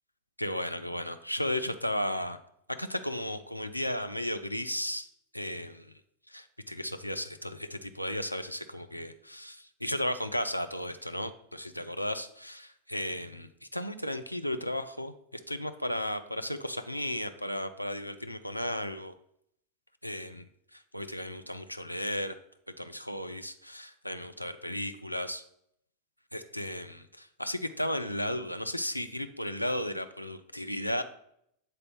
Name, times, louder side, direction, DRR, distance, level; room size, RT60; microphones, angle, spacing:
voice 1, 0.4-2.4 2.8-5.1 5.3-6.0 6.3-19.2 20.0-22.4 22.8-25.4 26.3-31.0, left 1 dB, 90° left, 9 dB, 0.4 m, -35 dB
7.4 x 3.9 x 3.8 m, 0.72 s
figure-of-eight pair, 90°, 0 cm